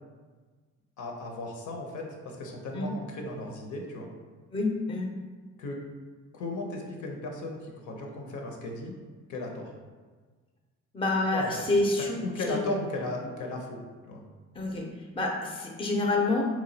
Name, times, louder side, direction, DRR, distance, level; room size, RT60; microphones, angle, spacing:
voice 1, 1.0-4.1 5.6-5.8 6.3-8.9 9.3-9.7 11.3-11.5 12.2-13.8 14.1-14.2, left 2 dB, 75° left, 1 dB, 0.7 m, -35 dB
voice 2, 4.5-5.1 10.9-12.6 14.5-14.9 15.2-16.5, left 2 dB, 20° left, 1 dB, 0.5 m, -28 dB
3.0 x 2.3 x 3.9 m, 1.4 s
cardioid pair, 90°, 30 cm